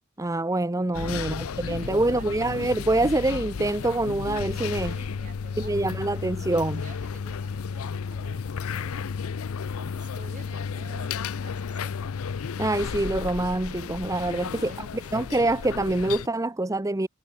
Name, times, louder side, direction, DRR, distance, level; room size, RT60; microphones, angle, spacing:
voice 1, 0.2-4.9 5.6-6.8 12.6-14.7 15.1-17.1, right 2 dB, 15° right, 0.7 m, -25 dB
sound 1, 0.9-16.3, left 6 dB, 75° left, 0.5 m, -33 dB
voice 2, 1.0-2.3 4.8-6.2 6.8-9.2 9.8-11.9 14.3-15.0, right 3 dB, 35° right, 6.6 m, -50 dB
head